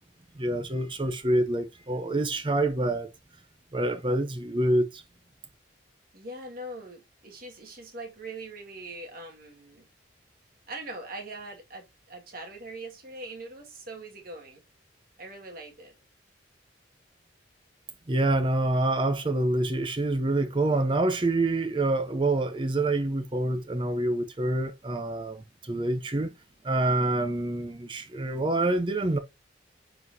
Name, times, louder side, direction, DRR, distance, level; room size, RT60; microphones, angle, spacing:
voice 1, 0.4-3.1 3.7-5.0 18.1-26.3 26.6-29.2, right 2 dB, 25° right, 0.6 m, -26 dB
voice 2, 6.1-9.9 10.7-14.6 15.2-15.9, right 2 dB, 50° right, 1.8 m, -42 dB
9.5 x 4.1 x 2.7 m
head